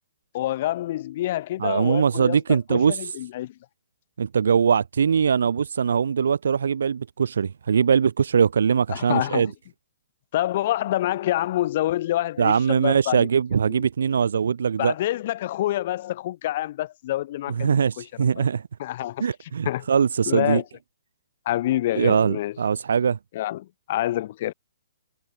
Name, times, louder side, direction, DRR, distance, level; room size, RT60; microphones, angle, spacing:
voice 1, 0.3-3.5 8.9-9.5 10.3-13.3 13.7-13.8 14.8-18.1 18.4-18.5 18.8-19.9 20.3-20.6 21.5-22.6 23.3-24.5, left 14 dB, 45° left, 1.0 m, -27 dB
voice 2, 1.6-3.1 4.2-9.5 12.4-14.9 17.5-18.6 19.2-20.6 22.0-23.2, right 6 dB, 75° right, 0.5 m, -21 dB
hypercardioid pair, 150°, 0 cm